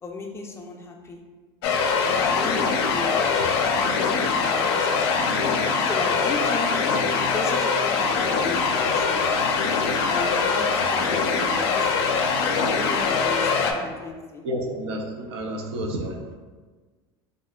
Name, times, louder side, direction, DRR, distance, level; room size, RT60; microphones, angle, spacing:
voice 1, 0.0-1.2 2.1-3.1 3.6-5.3 5.9-6.7 7.2-9.2 10.1-11.9 12.6-14.4, left 3 dB, 20° left, 1 dB, 0.4 m, -35 dB
sound 1, 1.6-13.7, left 5 dB, 80° left, 0.4 m, -23 dB
voice 2, 14.4-16.3, right 1 dB, 90° right, 1 dB, 0.5 m, -30 dB
3.5 x 2.4 x 2.2 m, 1.4 s
supercardioid pair, 110°, 14 cm